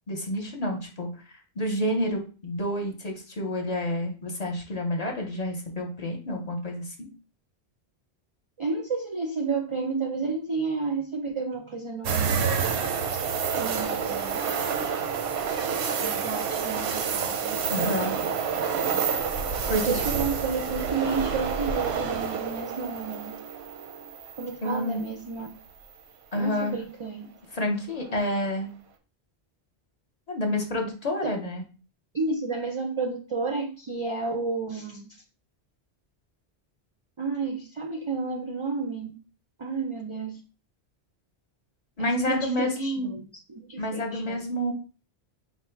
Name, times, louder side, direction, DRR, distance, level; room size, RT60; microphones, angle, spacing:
voice 1, 0.1-1.1 1.6-7.1 17.7-18.2 19.7-20.0 24.6-25.0 26.3-26.8 27.5-28.7 30.3-31.6 42.0-43.1 43.8-44.7, left 1 dB, 40° left, 2 dB, 0.8 m, -29 dB
voice 2, 8.6-12.4 13.6-14.4 16.0-17.6 19.7-23.4 24.4-25.5 26.3-27.3 31.2-31.3 32.1-35.1 37.2-39.1 39.6-40.4 42.0-43.2 43.5-44.4, right 4 dB, 50° right, 3 dB, 0.3 m, -31 dB
sound 1, 12.0-25.1 25.5-25.6 28.0-28.4, right 6 dB, 85° right, 0.9 m, -28 dB
3.9 x 2.1 x 4.4 m, 0.35 s
omnidirectional pair, 1.1 m